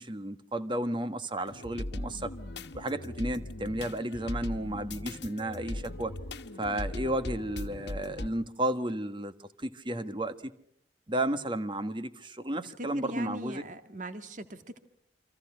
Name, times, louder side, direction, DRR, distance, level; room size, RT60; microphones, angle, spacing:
voice 1, 0.0-2.3 2.7-6.1 6.6-10.5 11.1-13.6, right 1 dB, 30° right, 10 dB, 1.5 m, -33 dB
sound 1, 1.5-8.3, left 1 dB, 75° left, 1.3 m, -39 dB
voice 2, 12.8-14.8, right 1 dB, 45° right, 9 dB, 2.0 m, -40 dB
29.0 x 25.5 x 5.7 m, 0.71 s
head